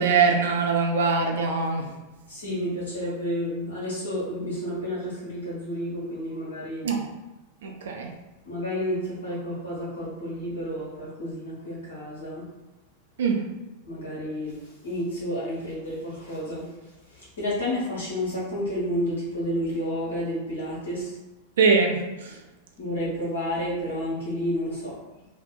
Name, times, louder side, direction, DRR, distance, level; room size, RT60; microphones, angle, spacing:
voice 1, 0.0-2.0 6.8-7.1 7.6-8.1 13.2-13.5 21.6-22.4, right 5 dB, 60° right, 3 dB, 0.4 m, -23 dB
voice 2, 2.3-6.9 8.4-12.4 13.8-21.2 22.8-25.0, equal, 70° left, -6 dB, 1.1 m, -31 dB
2.7 x 2.0 x 2.3 m, 1.1 s
figure-of-eight pair, 90°, 0 cm